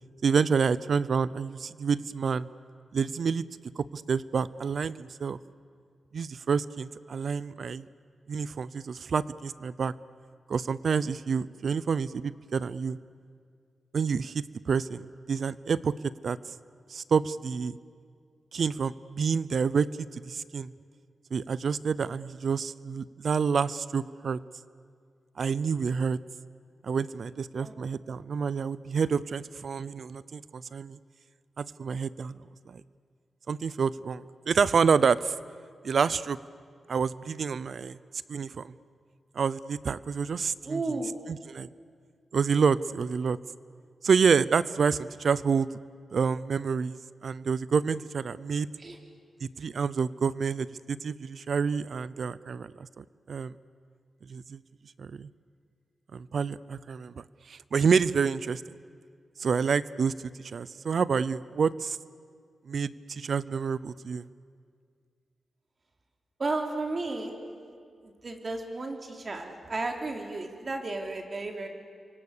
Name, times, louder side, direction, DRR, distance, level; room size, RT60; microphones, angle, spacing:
voice 1, 0.2-2.5 2.9-3.4 3.8-5.4 6.1-7.9 8.3-9.9 10.5-13.0 13.9-15.9 16.2-16.4 16.9-17.8 18.5-20.7 21.3-24.4 25.4-26.2 26.8-31.0 31.6-32.3 32.7-32.8 33.5-35.3 35.8-36.4 36.9-38.0 38.3-38.7 39.3-40.8 41.3-41.7 42.3-43.4 44.0-45.7 46.1-48.7 49.4-52.7 53.0-53.5 54.3-54.6 55.0-55.3 56.1-58.6 59.4-60.1 60.4-62.0 62.7-64.3, right 6 dB, 70° right, 18 dB, 0.6 m, -28 dB
voice 2, 40.6-41.1 48.8-49.0 66.4-67.3 68.0-71.7, right 3 dB, 50° right, 3 dB, 3.6 m, -33 dB
28.5 x 24.5 x 6.8 m, 2.1 s
cardioid pair, 60°, 0 cm